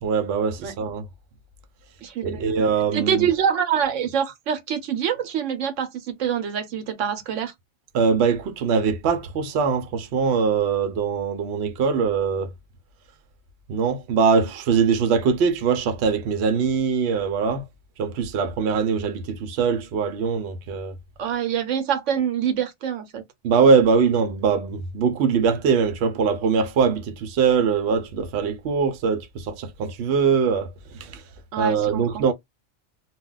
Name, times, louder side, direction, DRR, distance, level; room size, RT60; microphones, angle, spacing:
voice 1, 0.0-1.1 2.2-3.3 7.9-12.5 13.7-17.7 18.0-20.9 23.4-31.2 31.6-32.3, right 5 dB, 65° right, 0.8 m, -22 dB
voice 2, 2.0-2.5 2.9-7.5 21.2-23.2 31.5-32.2, right 8 dB, 85° right, 1.0 m, -25 dB
2.3 x 2.2 x 3.7 m
omnidirectional pair, 1.2 m